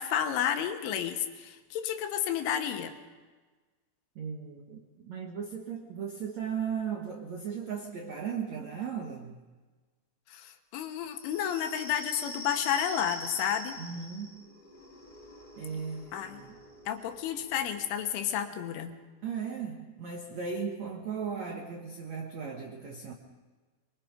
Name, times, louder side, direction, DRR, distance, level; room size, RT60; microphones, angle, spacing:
voice 1, 0.0-2.9 10.3-13.8 16.1-16.4 16.9-18.9, left 9 dB, 80° left, 6 dB, 3.7 m, -31 dB
voice 2, 4.1-9.4 13.8-14.5 15.6-16.6 19.2-23.1, right 6 dB, 80° right, 2 dB, 1.6 m, -37 dB
sound 1, 11.1-18.4, equal, 50° left, 0.5 m, -45 dB
24.0 x 23.5 x 5.1 m, 1.3 s
omnidirectional pair, 5.6 m